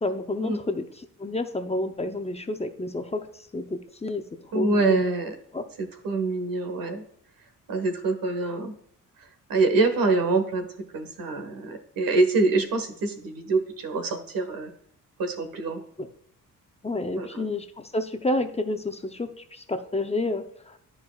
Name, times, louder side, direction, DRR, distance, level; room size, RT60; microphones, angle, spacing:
voice 1, 0.0-0.8 1.2-3.3 3.5-4.2 4.5-5.0 5.5-5.6 16.0-16.1 16.8-20.8, left 2 dB, 20° left, 7 dB, 0.6 m, -29 dB
voice 2, 4.5-5.3 5.8-7.0 7.7-8.7 9.5-10.7 10.9-14.7 15.2-15.8 17.2-17.5, right 3 dB, 85° right, 6 dB, 1.5 m, -25 dB
12.5 x 4.7 x 2.3 m, 0.69 s
cardioid pair, 125°, 33 cm